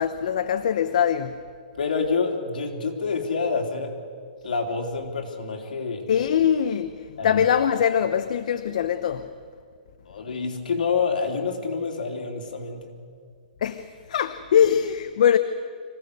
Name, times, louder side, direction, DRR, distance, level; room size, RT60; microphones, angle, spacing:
voice 1, 0.0-1.3 6.1-6.9 7.2-9.3 13.6-13.8 14.1-15.4, left 8 dB, 60° left, 10 dB, 0.8 m, -22 dB
voice 2, 1.8-3.9 4.4-6.1 7.2-7.4 10.0-12.9, left 5 dB, 75° left, 2 dB, 3.3 m, -27 dB
25.5 x 16.5 x 6.7 m, 2.1 s
hypercardioid pair, 165°, 5 cm